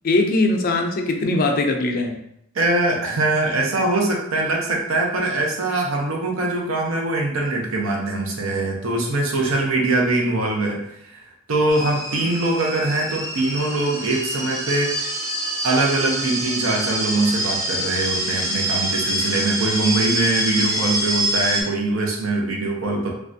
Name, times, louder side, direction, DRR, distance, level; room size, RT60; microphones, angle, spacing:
voice 1, 0.0-2.2, left 2 dB, 45° left, 4 dB, 0.4 m, -20 dB
voice 2, 2.5-11.2 11.5-15.0 15.6-23.1, right 2 dB, 80° right, 0 dB, 0.7 m, -22 dB
sound 1, 11.7-21.6, right 1 dB, 15° right, 0.6 m, -26 dB
3.1 x 2.4 x 2.6 m, 0.76 s
head